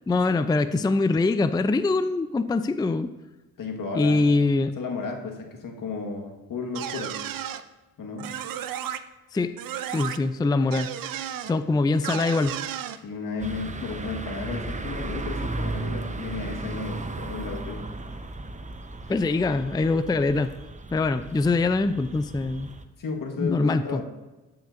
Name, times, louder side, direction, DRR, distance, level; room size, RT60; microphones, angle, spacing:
voice 1, 0.1-3.1 3.9-4.7 9.3-9.6 9.9-10.9 11.5-12.6 19.1-20.5 20.9-22.7 23.4-24.0, left 3 dB, 10° left, 11 dB, 0.4 m, -23 dB
voice 2, 3.6-4.3 4.8-7.2 8.0-8.3 13.0-17.8 23.0-24.0, left 4 dB, 70° left, 2 dB, 1.5 m, -33 dB
sound 1, 6.7-7.6 8.2-9.0 9.6-10.2 10.7-11.5 12.0-13.0, right 10 dB, 70° right, 0.6 m, -33 dB
sound 2, 13.4-22.8, right 2 dB, 20° right, 0.8 m, -35 dB
13.0 x 6.0 x 2.5 m, 1.1 s
supercardioid pair, 50°, 35 cm